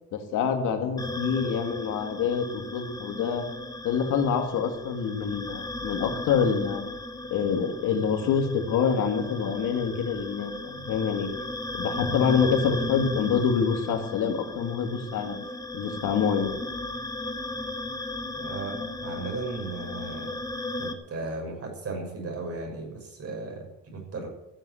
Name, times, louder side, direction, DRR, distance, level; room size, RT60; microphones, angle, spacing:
voice 1, 0.1-3.5 3.8-6.8 7.3-11.3 11.7-15.4 15.7-16.5, left 6 dB, 90° left, 5 dB, 2.4 m, -26 dB
sound 1, 1.0-20.9, left 2 dB, 10° left, 1.9 m, -36 dB
voice 2, 18.3-20.4 20.8-24.3, right 3 dB, 50° right, 1 dB, 6.4 m, -36 dB
15.0 x 7.8 x 9.9 m, 0.93 s
cardioid pair, 90°, 30 cm